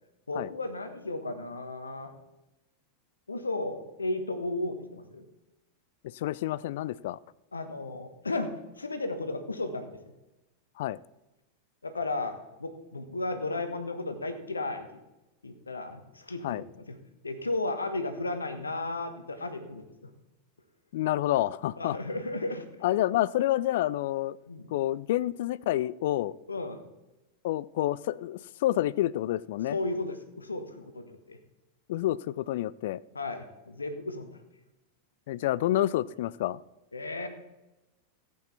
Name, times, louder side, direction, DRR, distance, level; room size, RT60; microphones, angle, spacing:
voice 1, 0.3-2.1 3.3-5.3 7.5-10.0 11.8-14.9 15.4-17.0 17.2-20.1 21.8-22.7 24.5-24.6 26.5-26.8 29.7-31.4 33.1-34.3 36.9-37.3, left 2 dB, 75° left, 9 dB, 1.3 m, -34 dB
voice 2, 6.1-7.2 10.8-11.0 16.4-16.6 20.9-22.0 22.8-24.4 24.7-26.4 27.4-29.8 31.9-33.0 35.3-36.6, left 14 dB, 55° left, 21 dB, 0.3 m, -28 dB
15.0 x 8.5 x 4.2 m, 1.0 s
figure-of-eight pair, 90°, 0 cm